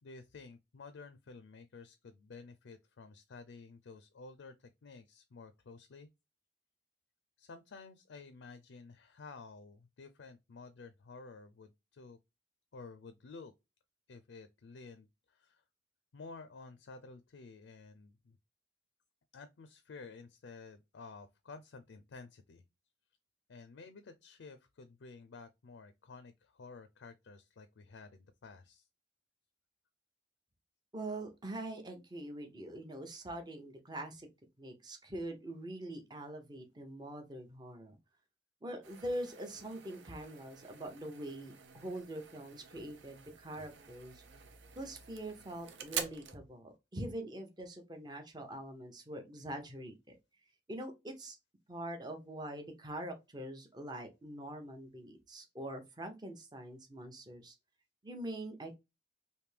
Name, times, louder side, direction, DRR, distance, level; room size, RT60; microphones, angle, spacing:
voice 1, 0.0-6.1 7.4-12.2 12.7-13.5 14.1-15.6 16.1-18.4 19.3-22.6 23.5-28.9, left 4 dB, 80° left, 0.4 m, -52 dB
voice 2, 30.9-34.3 34.6-38.0 38.6-44.2 44.8-50.2 50.7-51.4 51.7-57.6 58.0-58.8, right 1 dB, 20° right, 0.6 m, -44 dB
sound 1, 38.8-46.4, right 7 dB, 80° right, 0.6 m, -47 dB
3.4 x 2.6 x 3.2 m
head